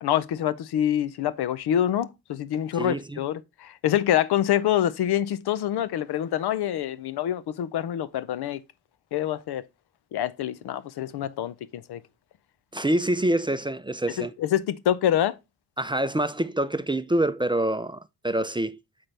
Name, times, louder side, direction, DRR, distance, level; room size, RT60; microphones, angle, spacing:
voice 1, 0.0-8.6 9.1-9.7 10.1-12.0 14.2-15.4, left 11 dB, 75° left, 0.6 m, -26 dB
voice 2, 2.7-3.2 12.7-14.3 15.8-18.8, right 1 dB, 15° right, 0.4 m, -26 dB
6.6 x 5.7 x 3.2 m
supercardioid pair, 50°, 39 cm